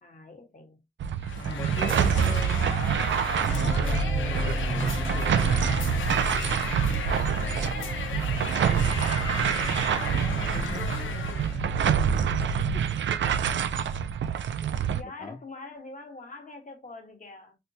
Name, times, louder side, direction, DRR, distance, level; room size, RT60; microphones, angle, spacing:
voice 1, 0.0-0.8 4.4-4.7 7.3-7.8 12.7-12.9 14.9-17.6, left 3 dB, 40° left, 1.2 m, -44 dB
sound 1, 1.0-15.0, right 8 dB, 75° right, 0.4 m, -26 dB
sound 2, 1.2-11.6, left 6 dB, 85° left, 0.6 m, -36 dB
voice 2, 1.3-2.6 3.4-6.0 10.3-10.9 15.0-15.4, left 3 dB, 25° left, 0.5 m, -40 dB
sound 3, 3.5-12.7, equal, 30° right, 0.9 m, -34 dB
4.3 x 2.2 x 2.6 m
cardioid pair, 70°, 20 cm